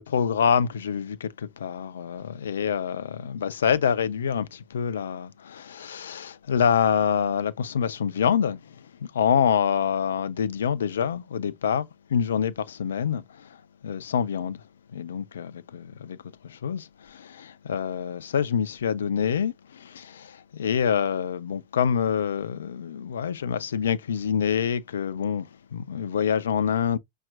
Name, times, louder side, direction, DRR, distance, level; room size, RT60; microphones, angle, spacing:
voice 1, 0.0-13.6 13.8-14.6 14.9-16.2 16.4-27.0, left 7 dB, 65° left, 0.3 m, -26 dB
5.6 x 2.4 x 2.4 m
figure-of-eight pair, 90°, 0 cm